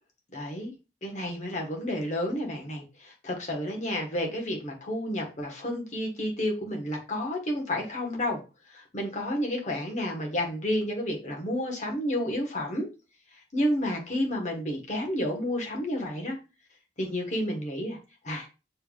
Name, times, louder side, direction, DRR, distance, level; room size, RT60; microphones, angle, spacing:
voice 1, 0.3-0.7 1.0-8.4 8.7-12.9 13.5-16.4 17.0-18.0 18.2-18.5, left 1 dB, 45° left, 1 dB, 1.3 m, -30 dB
6.7 x 3.3 x 2.3 m, 0.30 s
head